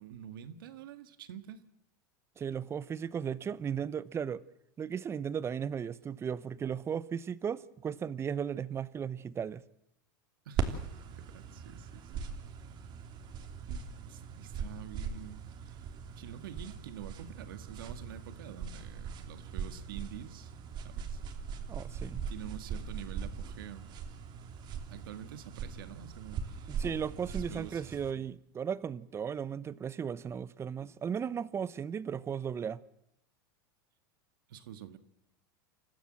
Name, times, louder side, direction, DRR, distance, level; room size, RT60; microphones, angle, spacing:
voice 1, 0.0-1.6 10.5-10.8 11.2-12.3 13.7-15.9 16.2-20.5 20.8-21.2 22.3-23.9 24.9-26.8 27.4-28.2 34.5-35.0, right 10 dB, 80° right, 1.9 m, -47 dB
voice 2, 2.4-4.4 4.8-9.6 21.7-22.2 26.7-32.8, right 7 dB, 25° right, 0.9 m, -36 dB
sound 1, 10.6-28.1, right 6 dB, 40° right, 3.0 m, -40 dB
28.5 x 14.5 x 7.7 m
hypercardioid pair, 115°, 11 cm